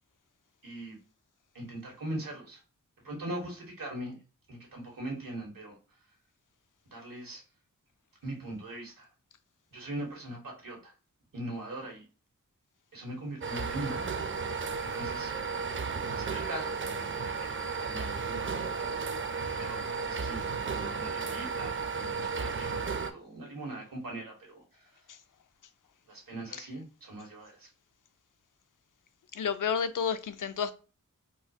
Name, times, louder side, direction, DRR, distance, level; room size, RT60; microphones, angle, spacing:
voice 1, 0.6-1.0 1.5-2.6 3.0-4.1 4.5-5.8 6.9-7.4 8.2-9.1 9.7-10.9 11.3-12.0 12.9-14.1 14.8-15.3 16.1-16.8 17.2-18.1 18.4-18.6 19.6-20.5 20.7-24.9 26.1-27.7, right 1 dB, 90° right, 1.3 m, -41 dB
sound 1, 13.4-23.1, right 5 dB, 40° right, 0.4 m, -34 dB
voice 2, 29.4-30.7, left 7 dB, 70° left, 0.5 m, -30 dB
3.9 x 2.4 x 2.8 m
wide cardioid pair, 55°, 33 cm